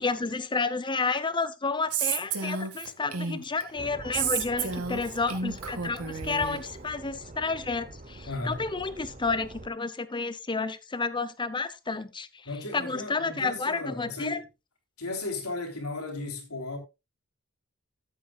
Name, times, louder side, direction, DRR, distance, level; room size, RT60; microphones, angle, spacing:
voice 1, 0.0-12.3 12.7-14.4, left 4 dB, 20° left, 0.7 m, -31 dB
Female speech woman speaking, 1.9-3.6 4.1-6.6, right 6 dB, 80° right, 1.6 m, -31 dB
sound 1, 3.8-9.7, right 2 dB, 35° right, 0.9 m, -44 dB
voice 2, 8.3-8.7 12.4-14.4 15.0-16.8, left 2 dB, 80° left, 3.2 m, -35 dB
14.0 x 8.3 x 2.3 m
head